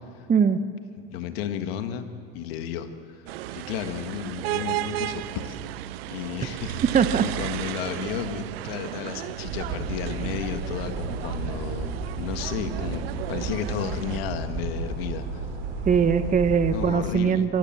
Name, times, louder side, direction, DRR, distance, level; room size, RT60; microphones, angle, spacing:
voice 1, 0.3-0.6 6.9-7.3 15.9-17.6, right 6 dB, 25° right, 11 dB, 1.0 m, -21 dB
voice 2, 1.0-2.1 2.3-3.2 3.5-6.8 7.2-15.5 16.7-17.5, left 9 dB, 75° left, 8 dB, 1.7 m, -33 dB
sound 1, 3.3-14.2, right 14 dB, 80° right, 0.7 m, -34 dB
sound 2, 9.5-17.0, right 4 dB, 55° right, 5.5 m, -33 dB
23.5 x 17.5 x 7.4 m, 2.5 s
hypercardioid pair, 90°, 30 cm